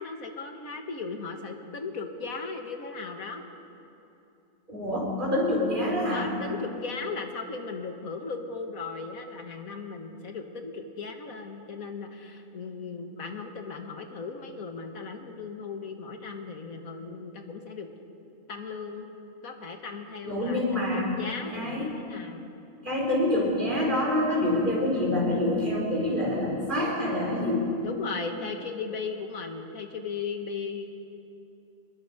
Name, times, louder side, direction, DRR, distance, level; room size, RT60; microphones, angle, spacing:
voice 1, 0.0-3.5 6.1-17.9 18.5-19.1 19.4-22.5 27.8-30.9, left 4 dB, 85° left, 5 dB, 2.0 m, -37 dB
voice 2, 4.7-6.3 20.2-21.1 21.5-21.9 22.8-27.7, left 1 dB, 35° right, -3 dB, 4.7 m, -26 dB
25.0 x 21.0 x 5.1 m, 2.9 s
omnidirectional pair, 1.4 m